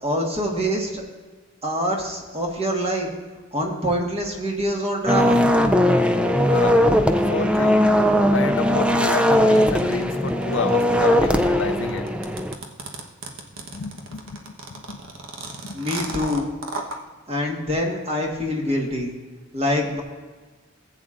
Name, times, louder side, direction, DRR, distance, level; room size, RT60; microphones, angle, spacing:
voice 1, 0.0-1.0 1.6-3.1 3.5-5.4 15.7-16.5 17.3-19.1 19.5-20.0, equal, 30° right, 0 dB, 1.5 m, -25 dB
sound 1, 5.1-12.5, equal, 5° right, 0.3 m, -19 dB
voice 2, 6.5-6.8 7.3-7.8 8.3-12.1 13.7-15.0 15.6-15.9, left 5 dB, 60° left, 9 dB, 0.4 m, -30 dB
sound 2, 9.6-17.0, right 3 dB, 80° right, 1.2 m, -35 dB
15.5 x 8.5 x 2.5 m, 1.4 s
head